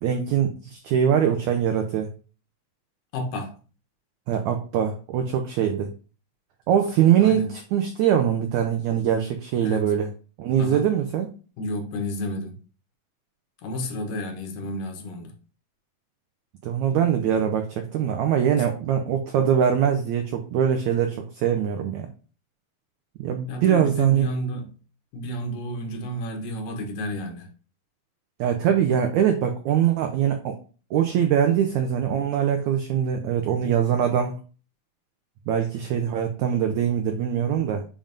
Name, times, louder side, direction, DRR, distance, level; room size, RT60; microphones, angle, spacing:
voice 1, 0.0-2.1 4.3-5.9 6.7-10.1 10.4-11.3 16.6-22.1 23.2-24.3 28.4-30.6 30.9-34.4 35.5-37.8, right 9 dB, 85° right, 1.6 m, -22 dB
voice 2, 3.1-3.6 7.2-7.5 9.6-9.9 10.6-10.9 11.6-12.6 13.6-15.3 23.5-24.7 25.1-27.5, left 1 dB, 75° left, 2.6 m, -31 dB
7.4 x 2.5 x 5.1 m
omnidirectional pair, 4.0 m